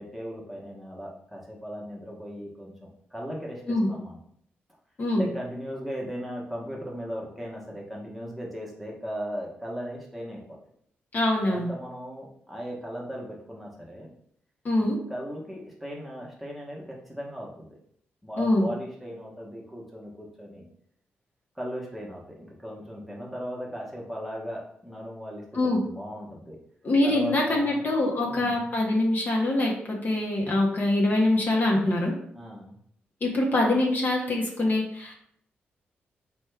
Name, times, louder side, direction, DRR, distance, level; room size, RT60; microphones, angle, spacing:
voice 1, 0.0-4.2 5.1-10.6 11.5-14.1 15.1-17.7 18.2-20.7 21.5-26.6 27.0-27.8 28.3-28.7 31.6-31.8 32.3-32.8, equal, ahead, -3 dB, 1.0 m, -37 dB
voice 2, 11.1-11.7 14.6-15.0 18.4-18.7 25.5-25.8 26.8-29.7 30.0-32.1 33.2-35.1, left 1 dB, 45° left, -1 dB, 0.7 m, -24 dB
3.3 x 2.2 x 3.3 m, 0.66 s
cardioid pair, 65°, 4 cm